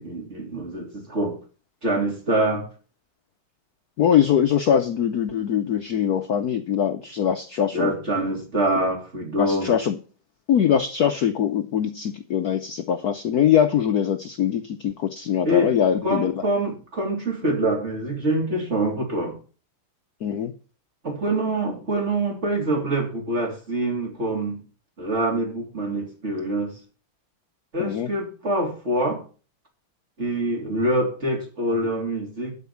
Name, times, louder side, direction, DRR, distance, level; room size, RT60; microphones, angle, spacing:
voice 1, 0.0-1.4 1.8-2.7 7.7-9.7 15.4-15.7 16.0-19.4 21.0-24.6 25.0-26.8 27.7-29.2 30.2-32.5, right 1 dB, 30° right, 3.3 m, -25 dB
voice 2, 4.0-7.9 9.4-10.0 10.5-16.4 20.2-20.5 27.8-28.1, left 9 dB, 60° left, 1.0 m, -22 dB
12.0 x 5.3 x 7.1 m
omnidirectional pair, 2.3 m